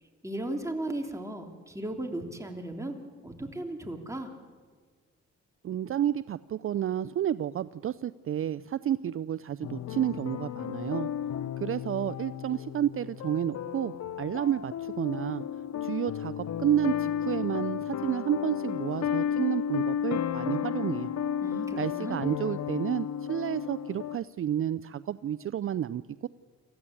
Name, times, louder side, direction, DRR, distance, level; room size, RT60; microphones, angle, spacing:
voice 1, 0.2-3.0 3.2-4.3 21.4-22.2, right 1 dB, 10° right, 3 dB, 3.2 m, -36 dB
voice 2, 5.6-11.1 11.6-15.4 15.8-21.2 21.8-26.3, right 10 dB, 45° right, 16 dB, 0.5 m, -31 dB
sound 1, 9.6-24.2, left 9 dB, 60° left, 0.9 m, -33 dB
27.5 x 15.0 x 8.6 m, 1.5 s
cardioid pair, 90°, 30 cm